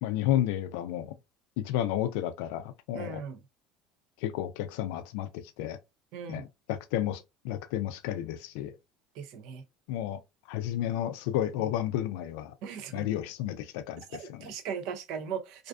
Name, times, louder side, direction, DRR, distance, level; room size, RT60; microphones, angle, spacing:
voice 1, 0.0-1.1 1.6-3.2 4.2-5.8 6.3-8.8 9.9-10.2 10.5-12.5 12.9-14.5, left 12 dB, 80° left, 0.3 m, -32 dB
voice 2, 2.9-3.4 6.1-6.4 9.2-9.6 12.6-13.1 14.1-15.7, right 7 dB, 65° right, 0.5 m, -38 dB
2.5 x 2.3 x 2.4 m
supercardioid pair, 125°, 0 cm